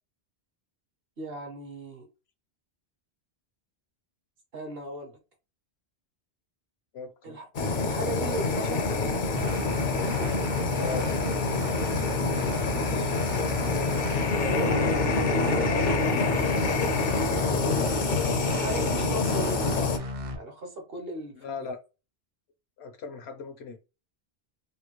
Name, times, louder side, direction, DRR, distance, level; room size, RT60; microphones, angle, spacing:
voice 1, 1.2-2.1 4.5-5.2 7.2-7.5 7.8-8.9 12.6-13.1 14.3-16.7 18.1-20.0 20.4-21.5, right 1 dB, 65° right, 1.3 m, -37 dB
voice 2, 6.9-7.4 10.7-11.1 21.3-21.8 22.8-23.8, left 4 dB, 80° left, 1.0 m, -37 dB
Fire, 7.5-20.0, left 3 dB, 55° left, 0.7 m, -26 dB
sound 1, 9.4-20.4, left 1 dB, 40° right, 0.7 m, -34 dB
3.5 x 2.2 x 3.0 m
omnidirectional pair, 1.1 m